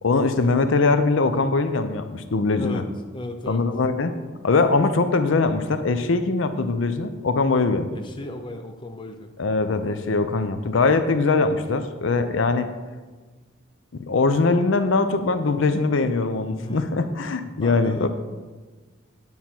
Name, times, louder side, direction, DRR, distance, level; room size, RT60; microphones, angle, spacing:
voice 1, 0.0-2.8 3.5-4.1 4.4-7.9 9.4-12.7 14.1-18.1, left 3 dB, 65° left, 9 dB, 0.5 m, -21 dB
voice 2, 3.1-3.7 7.9-9.3 16.6-17.0 17.4-18.1, left 1 dB, 25° left, 5 dB, 0.5 m, -35 dB
9.3 x 5.5 x 4.5 m, 1.3 s
head